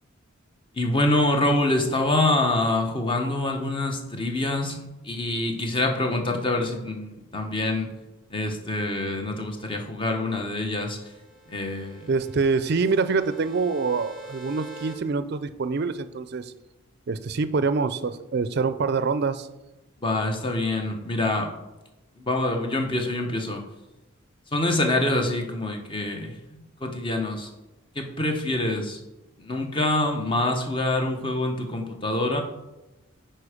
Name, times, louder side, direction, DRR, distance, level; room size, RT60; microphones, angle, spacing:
voice 1, 0.7-7.9 8.3-11.0 11.5-12.1 20.0-21.5 22.2-23.6 24.5-27.5 27.9-29.0 29.4-32.4, left 2 dB, 25° left, 3 dB, 1.0 m, -26 dB
sound 1, 10.1-14.9, right 2 dB, ahead, 1.3 m, -46 dB
voice 2, 12.1-16.5 17.1-19.5, right 4 dB, 50° right, 13 dB, 0.4 m, -25 dB
9.6 x 4.5 x 5.0 m, 1.0 s
head